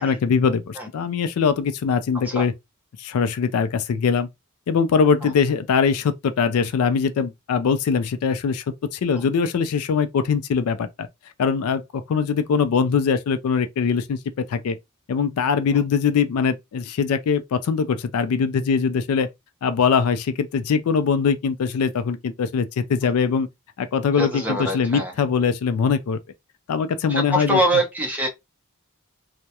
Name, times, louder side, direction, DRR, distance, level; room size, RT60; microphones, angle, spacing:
voice 1, 0.0-2.5 3.0-4.3 4.7-8.6 8.9-11.1 11.4-14.8 15.1-19.3 19.6-23.5 23.8-26.2 26.7-27.6, left 6 dB, 80° left, 0.3 m, -22 dB
voice 2, 24.2-25.1 27.1-28.3, right 1 dB, 5° right, 0.6 m, -24 dB
2.3 x 2.1 x 2.7 m
head